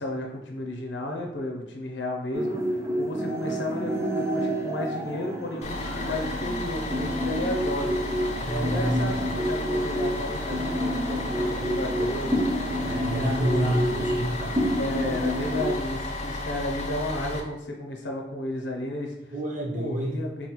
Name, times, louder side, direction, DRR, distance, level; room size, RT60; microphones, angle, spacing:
voice 1, 0.0-8.0 8.5-14.0 14.7-19.3 19.7-20.5, left 1 dB, 80° left, 1 dB, 0.6 m, -33 dB
sound 1, 2.3-15.7, equal, 15° right, 0.4 m, -29 dB
Bus, 5.6-17.4, left 2 dB, 40° left, 0.5 m, -33 dB
voice 2, 8.4-9.3 12.8-14.6 19.3-20.2, right 1 dB, 45° right, -2 dB, 0.8 m, -28 dB
4.1 x 2.3 x 2.9 m, 0.86 s
head